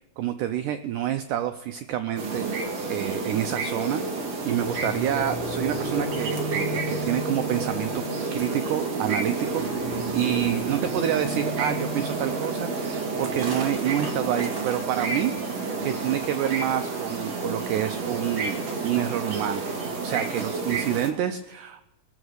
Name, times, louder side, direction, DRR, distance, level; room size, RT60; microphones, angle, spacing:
voice 1, 0.2-2.5 2.9-4.0 4.5-8.0 8.3-15.3 15.8-19.6 20.0-21.9, right 11 dB, 90° right, 8 dB, 1.8 m, -28 dB
sound 1, 2.2-21.1, right 3 dB, 50° right, 2.6 m, -30 dB
sound 2, 4.4-17.2, left 1 dB, 35° left, 2.7 m, -39 dB
21.0 x 7.2 x 6.4 m, 0.98 s
omnidirectional pair, 4.4 m